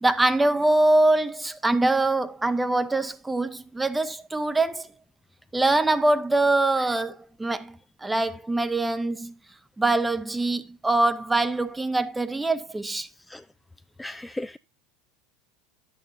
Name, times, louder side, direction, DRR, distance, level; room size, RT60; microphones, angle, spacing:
voice 1, 0.0-4.9 5.5-9.3 9.8-13.1, right 2 dB, 10° right, 0.8 m, -23 dB
voice 2, 14.0-14.6, left 1 dB, 5° left, 0.3 m, -35 dB
10.5 x 8.6 x 2.7 m
hypercardioid pair, 95°, 0 cm